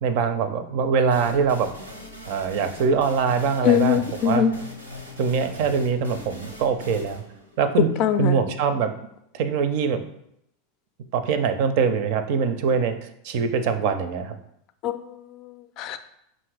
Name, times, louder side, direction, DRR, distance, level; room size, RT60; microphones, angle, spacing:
voice 1, 0.0-1.7 2.3-4.4 5.2-7.2 7.6-7.9 8.2-8.9 9.3-10.0 11.1-13.0 13.2-14.4, right 6 dB, 55° right, 10 dB, 0.4 m, -23 dB
sound 1, 1.1-8.6, left 1 dB, 90° right, 0.7 m, -41 dB
voice 2, 3.6-4.5 8.0-8.4 14.8-16.0, left 9 dB, 45° left, 10 dB, 0.4 m, -23 dB
5.4 x 2.6 x 3.3 m, 0.77 s
figure-of-eight pair, 85°, 0 cm